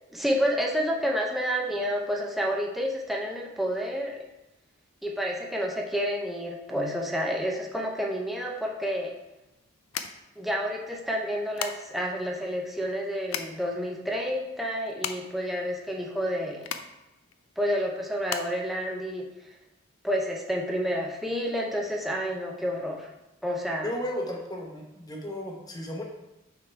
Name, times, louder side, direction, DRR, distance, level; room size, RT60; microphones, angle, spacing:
voice 1, 0.1-4.2 5.0-9.1 10.4-16.7 17.6-19.3 20.0-23.1 23.4-23.9, equal, ahead, -1 dB, 0.8 m, -29 dB
sound 1, 8.6-19.7, left 8 dB, 80° left, 0.4 m, -39 dB
voice 2, 23.8-26.0, left 1 dB, 20° left, -1 dB, 1.0 m, -34 dB
6.3 x 3.8 x 4.5 m, 0.96 s
head